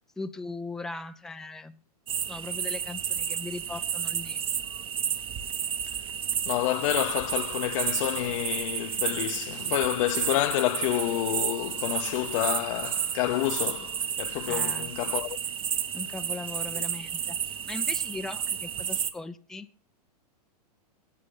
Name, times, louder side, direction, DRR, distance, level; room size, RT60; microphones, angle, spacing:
voice 1, 0.2-1.8 2.3-4.4 14.5-14.9 15.9-19.7, left 3 dB, ahead, 0.5 m, -39 dB
sound 1, 2.1-19.1, right 8 dB, 25° right, 1.1 m, -31 dB
voice 2, 6.5-15.4 16.7-16.8, left 16 dB, 50° left, 0.8 m, -29 dB
15.5 x 8.6 x 5.3 m
hypercardioid pair, 120°, 21 cm